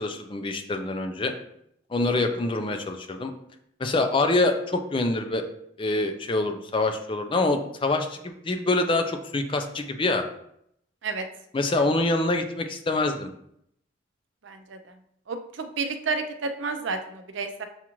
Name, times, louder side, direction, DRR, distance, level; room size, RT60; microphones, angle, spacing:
voice 1, 0.0-1.3 1.9-3.3 3.8-5.4 5.8-10.2 11.5-13.3, left 2 dB, 25° left, 6 dB, 0.4 m, -25 dB
voice 2, 14.4-14.8 15.3-17.7, right 4 dB, 75° right, 7 dB, 0.5 m, -31 dB
7.0 x 2.5 x 3.0 m, 0.73 s
head